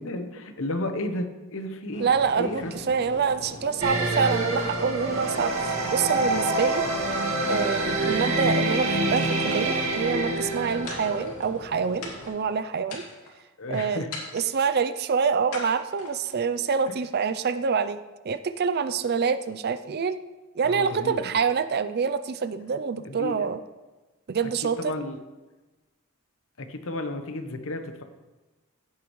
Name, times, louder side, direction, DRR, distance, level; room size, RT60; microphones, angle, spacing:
voice 1, 0.0-2.7 13.6-14.1 16.9-17.0 20.6-21.4 23.0-23.5 24.4-25.2 26.6-28.0, left 1 dB, 65° left, 7 dB, 1.0 m, -33 dB
sound 1, 1.9-12.3, left 1 dB, 35° left, 2.5 m, -43 dB
voice 2, 2.0-6.9 7.5-13.0 13.7-14.1 14.3-18.0 18.2-20.2 20.6-23.6 24.3-24.9, right 6 dB, 45° right, 12 dB, 0.5 m, -26 dB
Strings in C and F, 3.8-11.2, right 2 dB, 65° right, 2.1 m, -26 dB
sound 2, 9.2-10.0 10.9-11.7 12.0-12.5 12.9-13.4 14.1-14.7 15.5-16.4, left 3 dB, 90° left, 2.4 m, -40 dB
15.5 x 8.4 x 3.2 m, 1.2 s
head